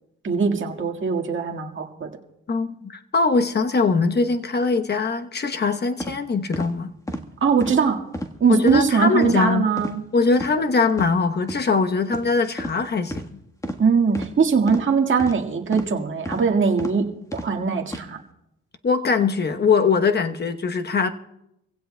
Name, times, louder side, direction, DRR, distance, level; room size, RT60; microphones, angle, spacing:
voice 1, 0.2-2.1 7.4-8.0 8.4-10.0 13.8-17.1 17.3-18.2, right 5 dB, 40° right, 1.8 m, -21 dB
voice 2, 2.5-6.9 8.5-9.7 10.1-13.4 18.8-21.1, left 4 dB, 35° left, 1.0 m, -22 dB
sound 1, 6.0-6.1 6.5-6.7 7.1-7.2 7.6-7.8 8.1-8.3 8.7-8.8 9.2-9.4 9.8-10.0 10.3-10.5 10.9-11.1 11.5-11.6 12.1-12.3 12.6-12.8 13.1-13.3 13.6-13.8 14.1-14.3 14.7-14.8 15.2-15.4 15.7-15.9 16.3-16.4 16.8-16.9 17.3-17.5 17.9-18.0, equal, 10° left, 1.4 m, -31 dB
26.0 x 16.0 x 2.2 m
cardioid pair, 90°, 30 cm